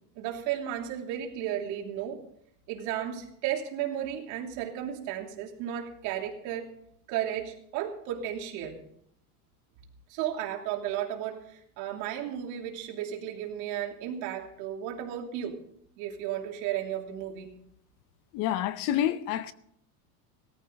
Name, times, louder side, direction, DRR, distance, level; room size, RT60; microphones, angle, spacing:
voice 1, 0.1-2.2 2.7-6.7 7.1-8.8 10.1-15.6 16.0-17.5, right 10 dB, 60° right, 3.1 m, -34 dB
voice 2, 18.3-19.5, left 11 dB, 45° left, 0.7 m, -28 dB
17.5 x 14.0 x 4.0 m
cardioid pair, 160°, 45 cm